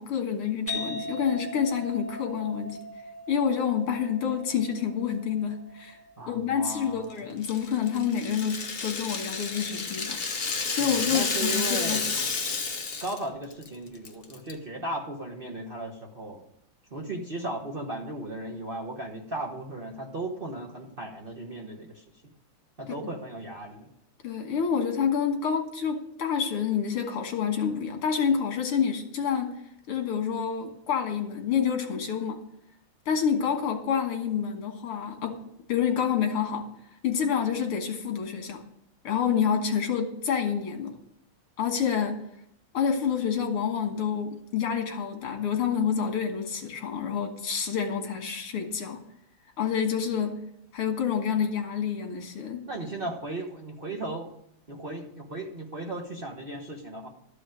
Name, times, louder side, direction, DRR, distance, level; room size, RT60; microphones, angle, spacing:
voice 1, 0.0-2.8 3.3-6.0 6.3-10.2 10.7-12.0 24.2-29.5 29.9-32.4 33.1-35.4 35.7-36.7 37.0-38.6 39.0-40.9 41.6-42.2 42.7-49.0 49.6-50.4 50.7-52.6, left 7 dB, 85° left, 4 dB, 2.5 m, -28 dB
sound 1, 0.7-8.1, left 1 dB, 5° right, 2.2 m, -41 dB
voice 2, 6.2-7.3 10.8-12.1 13.0-16.4 16.9-22.3 22.8-23.9 52.7-54.3 54.7-57.1, right 2 dB, 35° right, 0 dB, 1.0 m, -36 dB
Rattle (instrument), 7.4-13.2 13.5-13.7 14.0-14.5, left 4 dB, 45° left, 0.7 m, -31 dB
13.0 x 5.0 x 8.9 m, 0.74 s
omnidirectional pair, 2.4 m